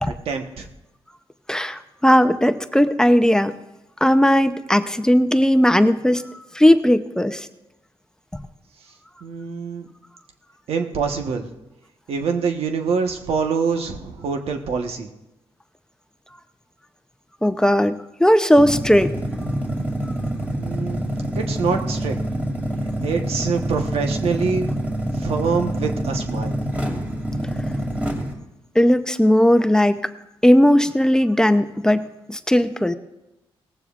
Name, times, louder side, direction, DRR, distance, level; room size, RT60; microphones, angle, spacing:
voice 1, 0.0-0.7 9.2-9.9 10.7-11.5 12.1-15.1 20.5-21.1 21.4-22.2 23.0-24.7 25.1-26.6, right 5 dB, 85° right, 4 dB, 1.2 m, -25 dB
voice 2, 1.5-3.6 4.0-6.3 6.5-7.5 17.4-19.1 28.7-30.1 30.4-32.9, equal, 5° left, 10 dB, 0.6 m, -17 dB
sound 1, 18.5-28.3, right 1 dB, 15° right, 2.6 m, -26 dB
18.5 x 15.0 x 2.5 m, 0.96 s
cardioid pair, 90°, 10 cm